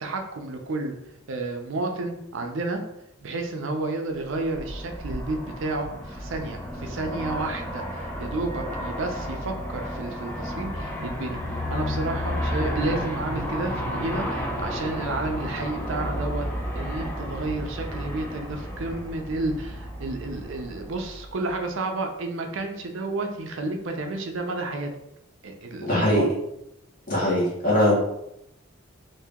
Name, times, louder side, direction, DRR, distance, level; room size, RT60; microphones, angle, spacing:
voice 1, 0.0-0.9 1.3-2.8 3.2-16.5 16.7-24.9 25.4-26.3, right 2 dB, 65° right, 4 dB, 0.5 m, -31 dB
Aircraft, 4.3-21.6, equal, 10° left, 0.5 m, -32 dB
voice 2, 25.8-26.2 27.1-27.9, left 1 dB, 40° left, -5 dB, 1.3 m, -21 dB
2.8 x 2.7 x 3.5 m, 0.82 s
head